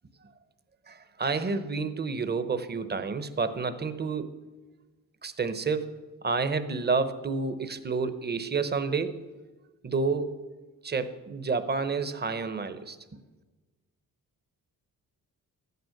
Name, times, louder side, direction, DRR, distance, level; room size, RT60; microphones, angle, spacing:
voice 1, 0.9-4.3 5.2-5.9 6.2-9.2 9.8-10.4 10.8-13.0, right 4 dB, 30° right, 11 dB, 0.9 m, -29 dB
13.5 x 9.4 x 6.5 m, 1.2 s
cardioid pair, 100°, 36 cm